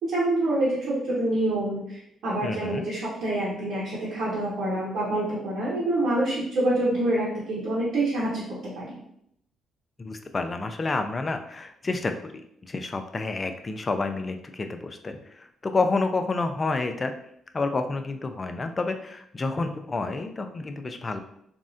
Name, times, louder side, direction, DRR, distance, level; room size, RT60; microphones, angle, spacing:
voice 1, 0.0-8.4 8.7-9.0, right 1 dB, 75° right, -8 dB, 1.0 m, -26 dB
voice 2, 2.4-2.9 10.0-17.1 17.5-21.2, left 3 dB, 30° left, 7 dB, 0.3 m, -29 dB
3.5 x 2.1 x 2.5 m, 0.72 s
cardioid pair, 90°, 0 cm